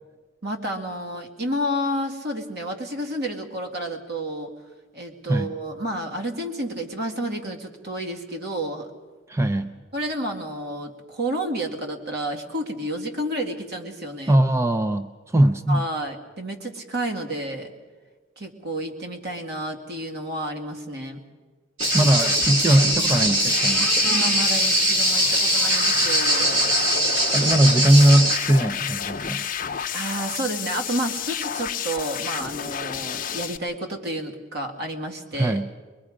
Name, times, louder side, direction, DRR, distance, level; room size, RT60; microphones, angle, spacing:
voice 1, 0.4-4.5 4.9-8.9 9.9-14.4 15.7-17.7 18.4-21.2 24.0-26.6 29.9-35.6, right 1 dB, 60° right, 3 dB, 2.2 m, -30 dB
voice 2, 9.3-9.8 14.3-15.8 21.9-24.0 27.3-29.5 35.3-35.7, right 1 dB, 15° right, 8 dB, 0.5 m, -20 dB
sound 1, 21.8-33.6, left 8 dB, 45° left, 0.8 m, -30 dB
sound 2, 21.8-28.4, right 1 dB, 85° right, 3.7 m, -22 dB
23.0 x 22.5 x 5.1 m, 1.4 s
head